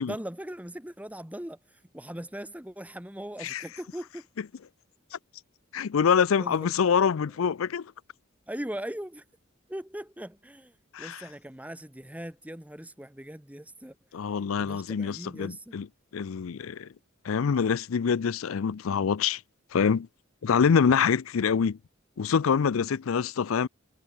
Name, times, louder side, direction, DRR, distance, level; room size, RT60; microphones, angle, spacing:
voice 1, 0.0-1.6 1.9-4.2 6.4-6.7 7.0-7.1 8.5-9.2 9.7-10.7 11.0-13.9 14.6-15.8, right 1 dB, 5° right, 1.6 m, -39 dB
voice 2, 5.7-7.9 10.9-11.2 14.1-15.9 16.1-16.9 17.2-19.4 19.7-20.1 20.4-21.8 22.2-23.7, left 6 dB, 85° left, 0.5 m, -25 dB
head